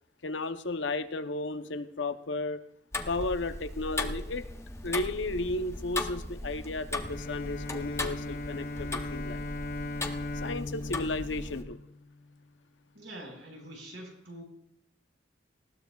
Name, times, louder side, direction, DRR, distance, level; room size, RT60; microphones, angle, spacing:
voice 1, 0.2-2.6 3.1-4.4 4.8-9.4 10.4-11.8, left 2 dB, 90° left, 10 dB, 0.7 m, -34 dB
Tick-tock, 2.9-11.6, left 2 dB, 15° left, 0.7 m, -37 dB
Bowed string instrument, 7.0-12.4, left 2 dB, 50° left, 0.4 m, -39 dB
voice 2, 12.9-14.4, right 1 dB, 80° right, 1 dB, 4.4 m, -45 dB
19.0 x 15.0 x 2.3 m, 0.71 s
head